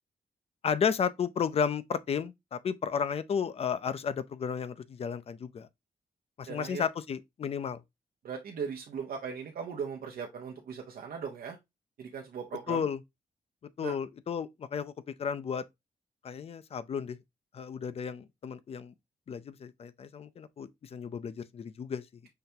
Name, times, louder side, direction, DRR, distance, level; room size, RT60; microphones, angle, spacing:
voice 1, 0.6-5.7 6.4-7.8 12.7-13.0 13.8-14.9 15.2-15.6 16.2-17.2 17.5-18.9 19.3-22.2, left 7 dB, 40° left, 0.4 m, -33 dB
voice 2, 6.5-6.9 8.2-11.6 12.0-12.9 13.8-13.9, right 6 dB, 80° right, 0.8 m, -38 dB
5.7 x 3.3 x 2.7 m
wide cardioid pair, 170°, 15 cm